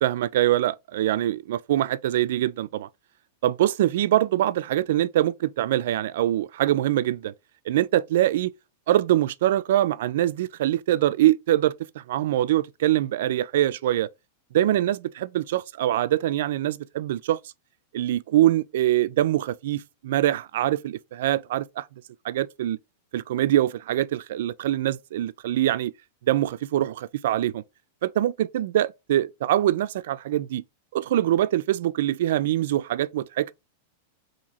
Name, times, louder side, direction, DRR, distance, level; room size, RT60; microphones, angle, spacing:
voice 1, 0.0-2.9 3.4-7.3 7.7-8.5 8.9-14.1 14.5-17.4 17.9-21.9 22.2-22.8 23.1-25.9 26.3-27.6 28.0-30.6 30.9-33.5, right 13 dB, 70° right, 0.3 m, -24 dB
2.9 x 2.6 x 4.1 m
supercardioid pair, 150°, 0 cm